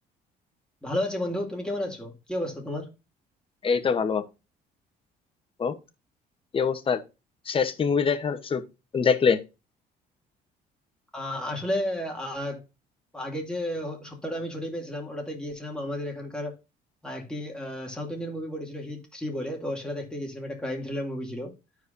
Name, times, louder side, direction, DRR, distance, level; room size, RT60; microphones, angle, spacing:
voice 1, 0.8-2.9 11.1-12.6 13.1-16.6 17.0-21.5, left 1 dB, 5° left, 2.4 m, -32 dB
voice 2, 3.6-4.2 5.6-5.7 6.5-7.0 7.5-8.6 8.9-9.4, left 6 dB, 30° left, 1.0 m, -24 dB
12.5 x 4.8 x 2.6 m
cardioid pair, 110°, 17 cm